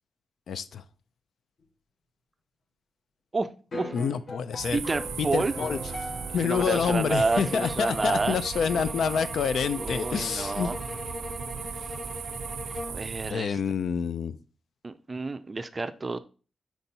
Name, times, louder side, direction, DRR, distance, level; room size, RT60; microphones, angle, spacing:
voice 1, 0.5-0.8 3.9-4.8 5.2-5.8 6.3-10.7 13.3-14.4, left 6 dB, 75° left, 0.4 m, -27 dB
sound 1, 3.7-8.1, left 1 dB, 45° left, 1.2 m, -39 dB
sound 2, 4.6-13.3, right 6 dB, 90° right, 0.5 m, -37 dB
voice 2, 4.7-5.5 6.4-8.4 8.7-8.8 9.7-10.8 12.9-13.6 14.8-16.2, right 3 dB, 25° right, 0.4 m, -29 dB
sound 3, 7.3-13.1, left 1 dB, 15° left, 0.9 m, -39 dB
5.3 x 4.5 x 4.2 m
wide cardioid pair, 160°, 0 cm